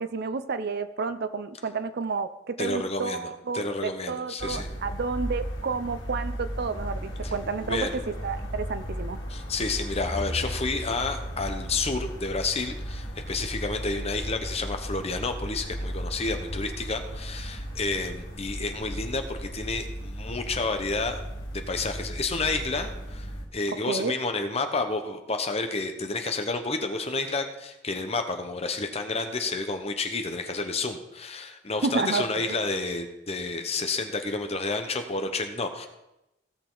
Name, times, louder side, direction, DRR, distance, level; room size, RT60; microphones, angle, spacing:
voice 1, 0.0-9.2 23.9-24.1 31.8-32.5, right 4 dB, 60° right, 11 dB, 0.6 m, -31 dB
voice 2, 2.6-3.2 3.5-4.7 7.2-7.3 7.6-7.9 9.3-21.2 21.5-23.3 23.5-35.9, left 3 dB, 35° left, 6 dB, 1.1 m, -30 dB
sound 1, 4.4-23.5, equal, 80° left, 2.5 m, -35 dB
16.5 x 6.7 x 4.0 m, 0.90 s
head